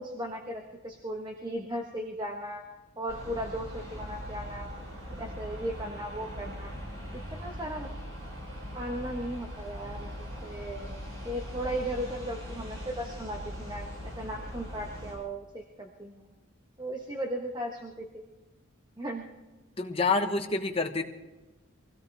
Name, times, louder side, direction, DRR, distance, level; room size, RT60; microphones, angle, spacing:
voice 1, 0.0-2.6 3.0-4.9 5.2-6.7 7.1-7.9 8.7-10.9 11.2-16.3 16.8-18.2 19.0-19.3, right 1 dB, 20° right, 1 dB, 1.3 m, -36 dB
sound 1, 3.1-15.2, equal, 80° right, 7.9 m, -41 dB
voice 2, 19.8-21.0, left 3 dB, 25° left, 3 dB, 1.2 m, -27 dB
24.5 x 16.5 x 3.5 m, 1.1 s
head